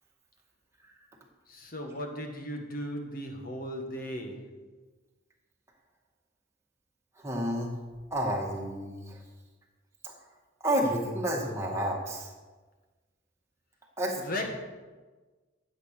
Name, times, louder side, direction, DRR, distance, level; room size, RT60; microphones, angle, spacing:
voice 1, 1.5-4.6 14.2-14.5, left 1 dB, 45° left, 3 dB, 1.9 m, -36 dB
voice 2, 7.2-7.8 8.1-9.2 10.0-10.2 10.6-12.3 14.0-14.2, equal, 15° right, -1 dB, 2.1 m, -30 dB
12.5 x 8.2 x 6.8 m, 1.3 s
head